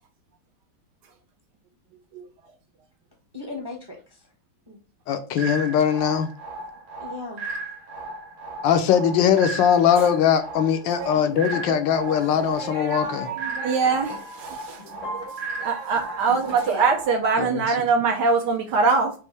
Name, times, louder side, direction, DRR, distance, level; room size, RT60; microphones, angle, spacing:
voice 1, 3.3-4.3 4.7-4.8 7.0-7.4 16.2-16.9, left 2 dB, 25° right, 0.6 m, -36 dB
voice 2, 5.1-6.3 8.6-13.3 17.4-17.6, left 8 dB, 75° left, 1.3 m, -21 dB
sound 1, 5.4-17.4, right 3 dB, 45° right, 1.2 m, -36 dB
voice 3, 11.0-11.3 11.7-12.3 12.6-14.8 15.1-15.3 15.6-19.1, right 4 dB, 70° right, 1.2 m, -24 dB
sound 2, 11.4-16.6, right 2 dB, 55° left, 0.9 m, -39 dB
5.4 x 2.6 x 3.2 m
omnidirectional pair, 2.2 m